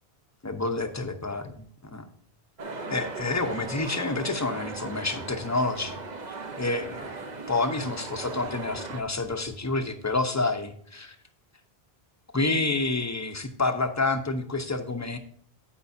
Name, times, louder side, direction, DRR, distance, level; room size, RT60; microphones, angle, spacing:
voice 1, 0.4-1.6 1.9-2.1 2.9-6.0 6.3-7.2 7.5-11.1 12.3-15.2, left 3 dB, 20° left, 7 dB, 0.8 m, -28 dB
sound 1, 2.6-9.0, right 3 dB, 45° right, 0.9 m, -38 dB
15.5 x 5.4 x 2.7 m, 0.62 s
omnidirectional pair, 1.1 m